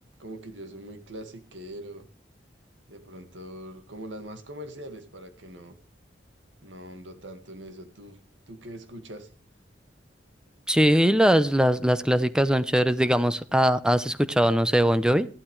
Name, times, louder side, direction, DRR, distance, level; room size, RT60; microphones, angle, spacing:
voice 1, 0.2-2.1 2.9-5.8 6.6-8.2 8.5-9.3, right 1 dB, 90° right, 7 dB, 2.0 m, -42 dB
voice 2, 10.7-15.3, equal, 5° right, 13 dB, 0.7 m, -21 dB
15.0 x 12.0 x 3.2 m, 0.37 s
head